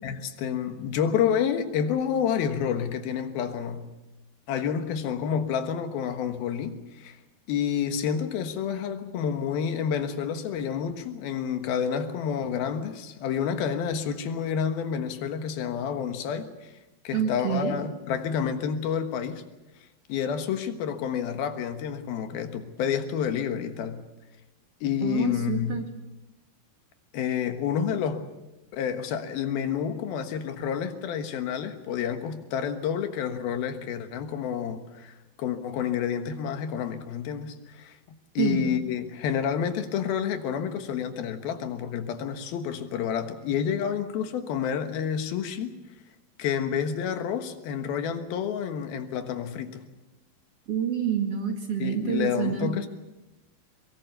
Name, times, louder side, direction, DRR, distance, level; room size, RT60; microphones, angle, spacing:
voice 1, 0.0-3.9 4.5-7.2 7.5-16.7 17.0-19.4 20.1-24.0 24.8-25.8 27.1-28.3 28.7-38.0 38.3-45.7 46.4-49.8 51.8-52.9, left 8 dB, 80° left, 8 dB, 3.3 m, -29 dB
voice 2, 17.1-17.8 25.0-25.9 38.4-38.7 50.7-52.7, right 8 dB, 45° right, 3 dB, 2.7 m, -28 dB
23.0 x 22.5 x 6.7 m, 1.0 s
omnidirectional pair, 4.2 m